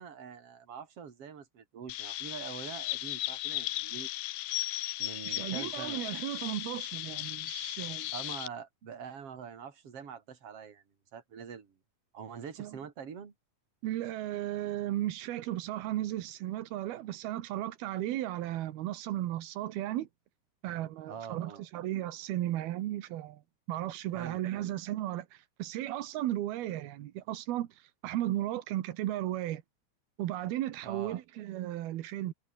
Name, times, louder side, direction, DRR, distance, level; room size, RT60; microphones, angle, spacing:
voice 1, 0.0-4.1 5.0-6.0 8.1-10.8 11.1-11.8 12.1-13.3 21.1-21.6 24.1-24.7 30.8-31.2, right 7 dB, 40° right, 3.8 m, -44 dB
Chirp tweet, 1.9-8.5, left 17 dB, 80° left, 2.5 m, -36 dB
voice 2, 5.2-8.1 12.6-12.8 13.8-20.1 20.6-23.4 23.7-29.6 30.2-32.3, right 14 dB, 90° right, 3.2 m, -35 dB
omnidirectional pair, 4.3 m